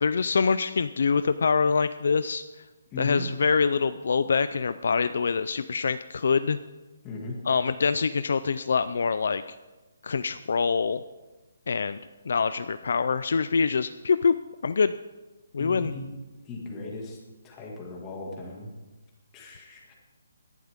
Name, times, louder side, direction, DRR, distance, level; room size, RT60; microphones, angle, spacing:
voice 1, 0.0-2.6 3.0-6.6 7.4-9.4 10.0-11.0 11.7-12.0 12.3-14.4 14.6-14.9 15.5-15.9, left 5 dB, 55° left, 12 dB, 0.4 m, -25 dB
voice 2, 2.9-3.2 7.0-7.4 15.6-16.1 16.4-17.2 17.4-18.7 19.3-19.9, left 2 dB, 15° left, -2 dB, 2.0 m, -37 dB
17.5 x 12.0 x 3.6 m, 1.1 s
hypercardioid pair, 175°, 0 cm